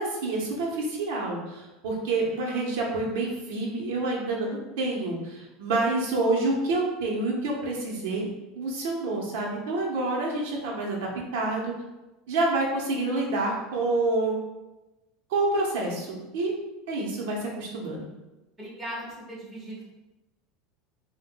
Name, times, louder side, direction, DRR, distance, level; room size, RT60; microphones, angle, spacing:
voice 1, 0.0-8.3 8.5-11.7 12.3-14.4 15.3-16.5 16.9-18.1, right 2 dB, 70° right, -2 dB, 1.1 m, -28 dB
voice 2, 18.6-19.9, right 1 dB, 10° right, -7 dB, 1.3 m, -38 dB
7.2 x 2.5 x 2.3 m, 1.0 s
supercardioid pair, 170°, 0 cm